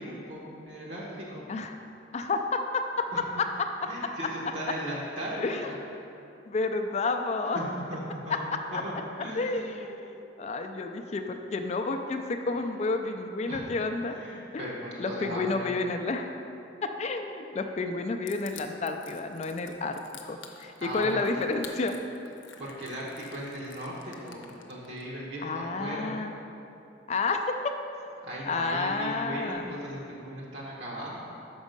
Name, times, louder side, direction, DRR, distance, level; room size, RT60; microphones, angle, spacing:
voice 1, 0.0-1.4 3.1-3.2 3.9-5.4 5.6-5.8 7.5-8.4 8.7-8.9 9.2-9.8 12.5-12.6 13.5-13.7 14.1-15.7 20.8-21.4 22.6-26.1 28.2-31.2, equal, 65° right, -4 dB, 1.1 m, -37 dB
voice 2, 1.5-1.8 2.1-3.9 5.3-5.7 6.5-7.6 8.7-8.8 9.4-14.2 14.5-14.7 15.0-16.3 16.8-20.0 20.2-21.9 25.4-26.3 27.1-27.7 28.5-29.7, left 3 dB, 35° left, 6 dB, 0.3 m, -30 dB
Crushing, 18.3-25.0, left 8 dB, 75° left, 0.6 m, -48 dB
6.1 x 5.3 x 5.2 m, 2.8 s
head